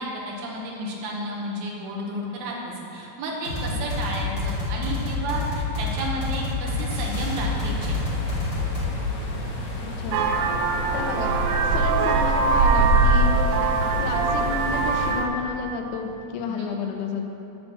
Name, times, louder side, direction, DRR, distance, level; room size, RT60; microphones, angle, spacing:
voice 1, 0.0-8.0 16.5-16.7, right 1 dB, 60° right, -2 dB, 2.1 m, -32 dB
sound 1, 3.4-8.9, left 3 dB, 35° left, 1.1 m, -28 dB
sound 2, 7.2-15.1, left 1 dB, 60° left, 2.4 m, -32 dB
voice 2, 9.8-10.2 10.8-13.7 14.0-17.2, left 5 dB, 80° left, 2 dB, 1.9 m, -31 dB
Vehicle horn car horn honking, 10.1-15.3, right 3 dB, 80° right, 2.1 m, -21 dB
10.0 x 4.4 x 7.1 m, 2.8 s
omnidirectional pair, 4.5 m